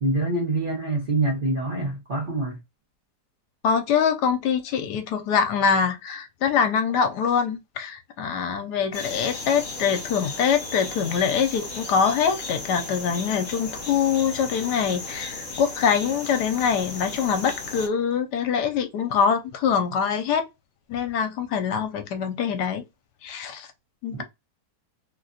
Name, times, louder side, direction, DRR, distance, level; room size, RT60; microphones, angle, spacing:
voice 1, 0.0-2.6, right 2 dB, 40° right, 0.8 m, -25 dB
voice 2, 3.6-20.4 20.9-22.8 23.2-23.7 24.0-24.2, left 7 dB, 75° left, 1.2 m, -24 dB
sound 1, 8.9-17.9, left 3 dB, 50° left, 1.4 m, -35 dB
3.2 x 2.4 x 2.5 m
omnidirectional pair, 1.9 m